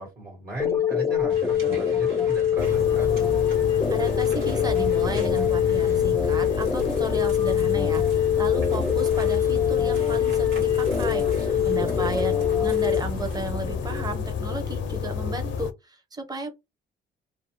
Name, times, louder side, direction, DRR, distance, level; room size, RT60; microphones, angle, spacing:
voice 1, 0.0-3.1 11.4-12.0, right 2 dB, 50° right, 1.5 m, -37 dB
sound 1, 0.6-13.0, left 9 dB, 15° left, 0.3 m, -24 dB
sound 2, 1.3-13.5, right 3 dB, 85° right, 1.4 m, -41 dB
sound 3, 2.6-15.7, left 6 dB, 70° left, 0.5 m, -30 dB
voice 2, 3.9-16.5, right 2 dB, 20° right, 0.8 m, -34 dB
2.6 x 2.2 x 2.9 m
cardioid pair, 90°, 20 cm